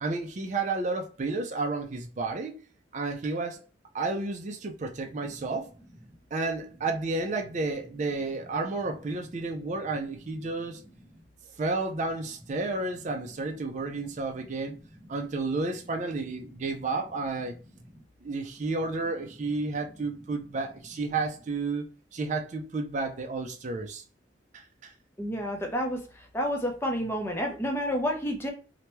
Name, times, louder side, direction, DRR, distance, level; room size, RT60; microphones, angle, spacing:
voice 1, 0.0-2.6 2.9-3.6 3.9-5.7 6.3-10.8 11.6-14.8 15.1-17.6 18.2-24.0 24.5-24.9, right 3 dB, 40° right, 0.4 m, -31 dB
voice 2, 25.2-26.0 26.3-28.5, equal, 15° left, 0.6 m, -29 dB
2.9 x 2.2 x 3.0 m
head